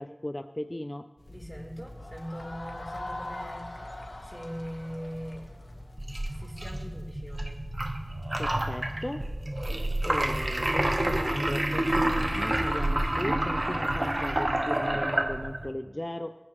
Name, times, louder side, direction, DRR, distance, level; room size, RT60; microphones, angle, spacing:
voice 1, 0.0-1.1 8.4-9.3 10.1-16.3, left 1 dB, 35° left, 10 dB, 0.4 m, -37 dB
sound 1, 1.2-11.5, left 1 dB, 55° left, 4.5 m, -46 dB
voice 2, 1.3-5.5 6.3-7.6, equal, 5° right, -1 dB, 3.3 m, -41 dB
sound 2, 2.0-6.7, left 1 dB, 80° left, 1.4 m, -42 dB
sound 3, 6.0-15.7, right 1 dB, 50° right, 0.9 m, -29 dB
19.5 x 11.0 x 2.9 m, 1.3 s
wide cardioid pair, 45°, 0 cm